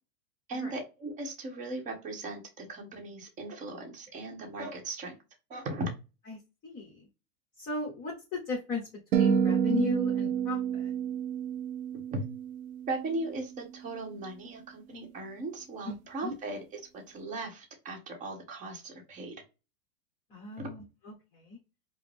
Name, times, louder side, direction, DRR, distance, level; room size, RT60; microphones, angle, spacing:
voice 1, 0.5-5.1 5.5-5.9 12.1-12.2 12.9-19.4 20.6-20.7, right 2 dB, 20° right, 1 dB, 1.0 m, -38 dB
voice 2, 6.6-7.0 7.6-8.8 9.2-10.9 15.9-16.0 16.2-16.3 20.3-21.6, left 4 dB, 20° left, -2 dB, 1.1 m, -36 dB
sound 1, 9.1-13.4, right 8 dB, 75° right, 0.9 m, -29 dB
4.9 x 2.1 x 3.4 m, 0.28 s
supercardioid pair, 150°, 42 cm